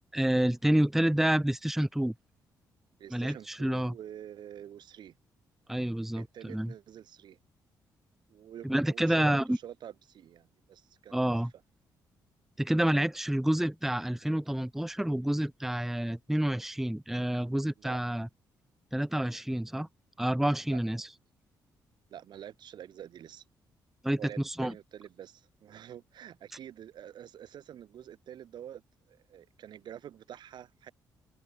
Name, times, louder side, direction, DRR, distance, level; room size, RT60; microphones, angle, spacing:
voice 1, 0.1-2.1 3.1-4.0 5.7-6.7 8.6-9.6 11.1-11.5 12.6-18.3 18.9-19.9 20.2-21.1 24.0-24.7, right 1 dB, 5° right, 0.6 m, -28 dB
voice 2, 3.0-5.1 6.2-7.4 8.3-11.4 17.8-18.0 20.7-20.8 22.1-23.4 24.2-28.8 29.1-30.9, right 10 dB, 70° right, 1.1 m, -47 dB
open air
cardioid pair, 75°, 8 cm